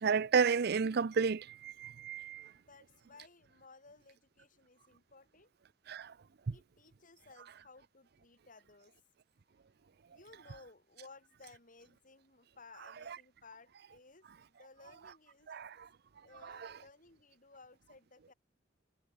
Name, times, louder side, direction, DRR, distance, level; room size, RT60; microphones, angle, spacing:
voice 1, 0.0-2.5 5.9-6.1 6.5-6.6 15.5-15.7 16.4-16.7, right 5 dB, 60° right, 0.5 m, -32 dB
voice 2, 2.5-5.5 6.5-9.0 10.1-15.5 16.2-18.3, left 3 dB, 45° left, 5.5 m, -59 dB
head